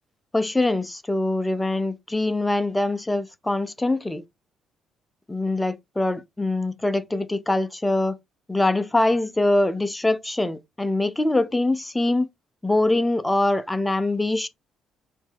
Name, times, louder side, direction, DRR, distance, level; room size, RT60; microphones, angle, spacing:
voice 1, 0.3-4.2 5.3-8.2 8.5-12.3 12.6-14.5, left 2 dB, 10° left, 0.6 m, -23 dB
4.2 x 2.8 x 3.5 m
figure-of-eight pair, 45°, 0 cm